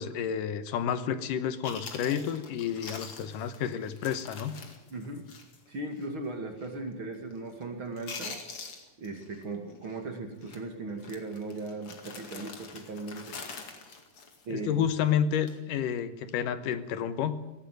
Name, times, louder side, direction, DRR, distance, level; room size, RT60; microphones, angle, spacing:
voice 1, 0.0-4.6 14.5-17.4, left 8 dB, 75° left, 12 dB, 2.6 m, -30 dB
Chewing mastication, 1.3-1.4 1.6-5.7 6.0-6.1 6.6-6.9 7.2-7.6 7.9-9.4 9.7-10.0 10.4-10.6 11.0-14.9 15.3-15.6, left 4 dB, 45° left, 2.9 m, -44 dB
voice 2, 4.9-5.3 5.7-8.4 9.0-13.4 14.4-14.8, right 2 dB, 40° right, 4 dB, 2.8 m, -38 dB
17.5 x 17.5 x 9.3 m, 0.98 s
omnidirectional pair, 3.9 m